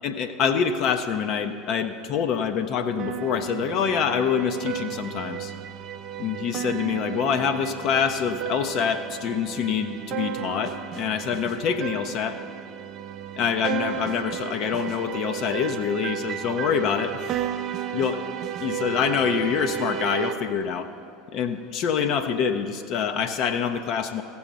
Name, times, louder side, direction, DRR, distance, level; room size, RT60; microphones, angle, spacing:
voice 1, 0.0-5.5 6.2-12.4 13.4-17.2 17.9-18.2 18.6-20.9 21.3-24.2, left 7 dB, 45° left, 7 dB, 0.5 m, -26 dB
sound 1, 3.0-20.3, right 11 dB, 45° right, 0.5 m, -33 dB
16.0 x 7.0 x 3.9 m, 2.5 s
figure-of-eight pair, 70°, 0 cm